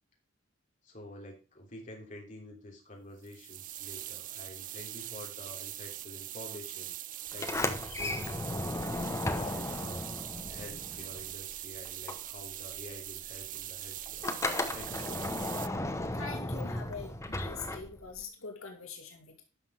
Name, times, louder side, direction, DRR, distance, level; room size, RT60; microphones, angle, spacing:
voice 1, 0.8-6.9 7.3-8.7 9.2-10.1 10.5-14.3 14.7-15.6, left 1 dB, 40° left, 0 dB, 3.1 m, -48 dB
sound 1, 3.2-15.7, right 14 dB, 40° right, 0.4 m, -42 dB
Sliding door, 7.3-11.6 11.8-18.2, left 2 dB, 15° left, 0.9 m, -35 dB
voice 2, 16.1-19.4, left 5 dB, 90° left, 3 dB, 2.2 m, -43 dB
11.5 x 6.0 x 4.7 m, 0.32 s
head